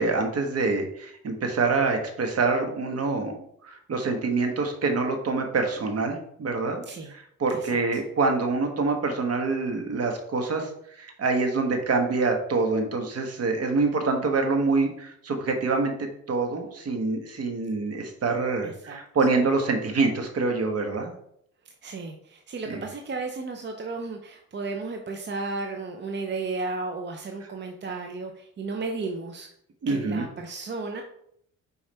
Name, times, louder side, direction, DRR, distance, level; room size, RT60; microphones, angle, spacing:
voice 1, 0.0-6.8 7.1-10.7 11.0-21.1 22.7-22.8 29.8-30.3, right 3 dB, 55° right, 5 dB, 1.4 m, -26 dB
voice 2, 7.5-8.0 18.6-19.0 21.8-29.5 29.9-31.0, right 3 dB, 35° right, 3 dB, 0.7 m, -34 dB
5.3 x 4.6 x 4.3 m, 0.70 s
cardioid pair, 90°, 30 cm